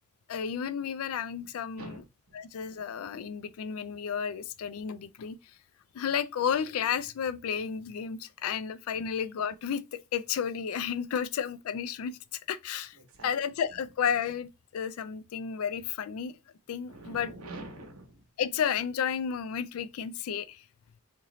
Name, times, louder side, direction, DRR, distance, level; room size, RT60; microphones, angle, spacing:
voice 1, 0.3-1.9 2.3-5.4 5.9-12.2 12.5-13.0 13.2-16.4 16.7-17.3 18.4-20.6, left 7 dB, 80° left, 0.3 m, -32 dB
voice 2, 1.8-2.4 8.9-9.1 12.9-13.3 16.9-18.3, right 2 dB, 80° right, 1.0 m, -46 dB
3.1 x 2.5 x 3.8 m
head